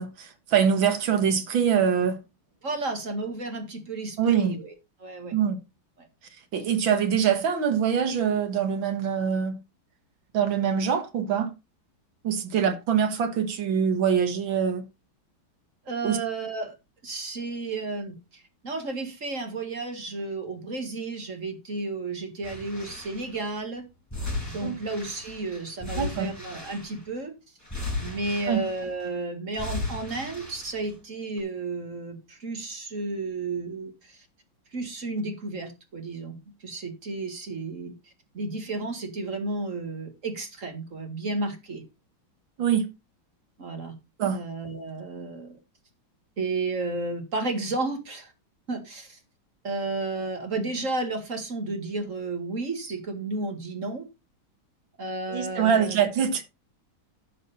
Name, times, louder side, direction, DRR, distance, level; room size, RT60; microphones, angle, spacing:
voice 1, 0.0-2.2 4.2-4.6 5.3-5.6 6.5-9.6 10.3-11.5 12.2-14.9 16.0-16.2 24.6-24.7 26.0-26.3 28.5-28.6 42.6-42.9 44.2-44.4 55.3-56.4, right 7 dB, 70° right, 2.2 m, -24 dB
voice 2, 2.6-4.7 5.0-5.3 6.0-6.1 15.9-16.8 17.0-23.9 24.5-27.3 28.0-34.3 34.7-41.8 43.6-43.9 44.3-45.6 46.4-48.3 48.7-49.2 49.6-54.1 55.0-56.0, right 3 dB, 40° right, 2.2 m, -32 dB
sound 1, 22.4-23.4 24.1-27.2 27.6-29.1 29.5-31.0 31.4-31.5, left 2 dB, 5° left, 5.0 m, -36 dB
11.0 x 6.7 x 4.2 m
omnidirectional pair, 2.3 m